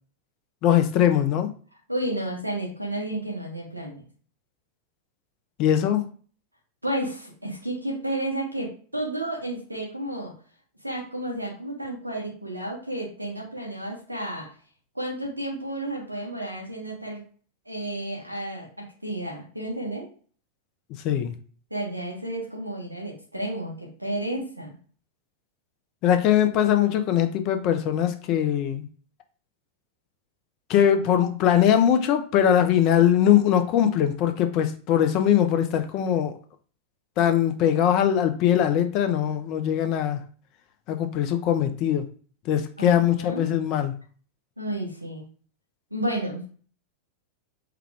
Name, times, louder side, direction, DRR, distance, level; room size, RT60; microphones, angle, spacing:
voice 1, 0.6-1.5 5.6-6.0 21.0-21.3 26.0-28.9 30.7-36.3 37.2-40.2 40.9-42.1 42.5-44.0, left 10 dB, 40° left, 8 dB, 0.6 m, -21 dB
voice 2, 1.9-4.0 6.8-10.3 10.8-14.5 14.9-17.2 17.6-18.7 19.0-20.1 21.7-24.8 42.8-43.5 44.6-45.2 45.9-46.5, right 1 dB, 85° right, -1 dB, 1.4 m, -31 dB
4.7 x 2.3 x 3.4 m, 0.41 s
figure-of-eight pair, 90°, 0 cm